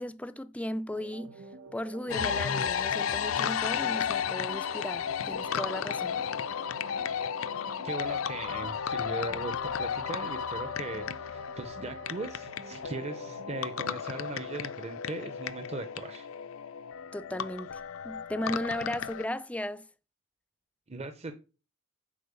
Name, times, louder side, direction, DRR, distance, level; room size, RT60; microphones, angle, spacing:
voice 1, 0.0-1.3 1.7-6.2 17.1-19.9, left 1 dB, 5° left, 0.4 m, -36 dB
sound 1, 0.9-13.9, right 3 dB, 90° right, 1.5 m, -49 dB
sound 2, 2.1-19.3, left 7 dB, 70° left, 0.5 m, -33 dB
voice 2, 7.8-16.3 20.9-21.3, right 3 dB, 30° right, 0.8 m, -39 dB
8.5 x 4.4 x 6.8 m
head